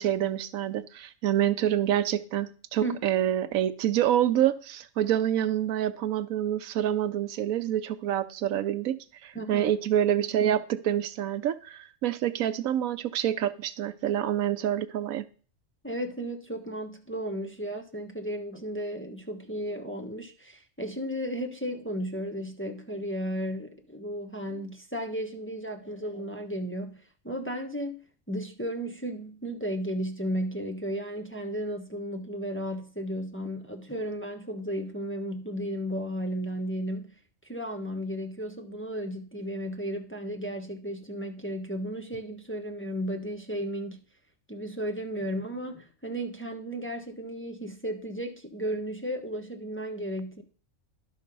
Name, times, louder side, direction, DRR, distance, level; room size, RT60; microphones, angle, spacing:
voice 1, 0.0-15.3, right 11 dB, 80° right, 1.1 m, -27 dB
voice 2, 9.3-9.7 15.8-28.0 28.3-44.0 44.5-50.4, equal, 10° left, 1.0 m, -34 dB
11.5 x 6.0 x 5.3 m
omnidirectional pair, 1.4 m